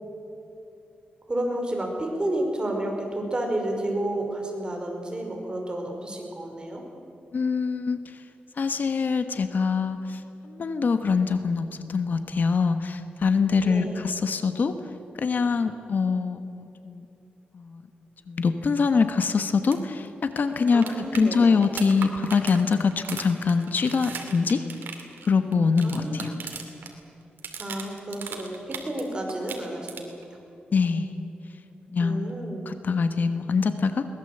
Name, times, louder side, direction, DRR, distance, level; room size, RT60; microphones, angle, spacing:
voice 1, 1.3-6.8 13.6-14.0 20.7-21.6 25.8-26.3 27.6-30.1 32.0-32.7, right 1 dB, 25° right, 2 dB, 5.2 m, -31 dB
voice 2, 7.3-8.2 8.6-14.8 15.2-17.1 17.5-17.9 18.3-24.6 25.3-26.3 30.7-31.1 31.9-34.1, left 5 dB, 60° left, 9 dB, 1.3 m, -24 dB
sound 1, 19.6-19.8 20.1-20.2 20.4-26.9 27.2-29.0 29.3-30.2 32.3-32.4, right 6 dB, 85° right, 2.5 m, -38 dB
22.0 x 19.0 x 8.0 m, 2.7 s
wide cardioid pair, 95°, 3 cm